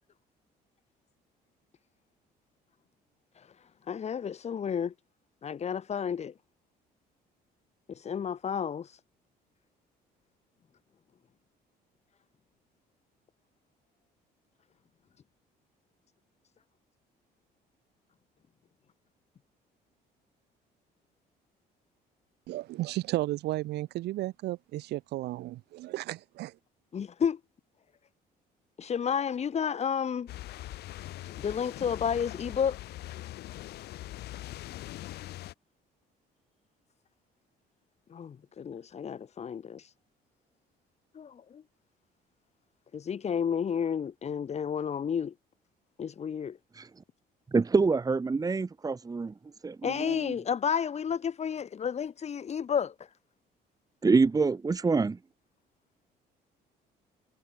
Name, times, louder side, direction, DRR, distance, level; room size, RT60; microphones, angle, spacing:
voice 1, 3.9-4.9 5.4-6.3 7.9-9.0 26.9-27.4 28.8-30.3 31.2-32.8 38.1-39.9 41.1-41.6 42.9-45.3 46.0-46.6 49.8-52.9, left 7 dB, 40° left, 2.9 m, -31 dB
voice 2, 22.5-26.6, right 17 dB, 80° right, 4.0 m, -34 dB
sound 1, 30.3-35.5, left 15 dB, 75° left, 2.4 m, -42 dB
voice 3, 47.5-49.3 49.6-50.3 54.0-55.2, right 4 dB, 20° right, 2.0 m, -26 dB
cardioid pair, 110°, 17 cm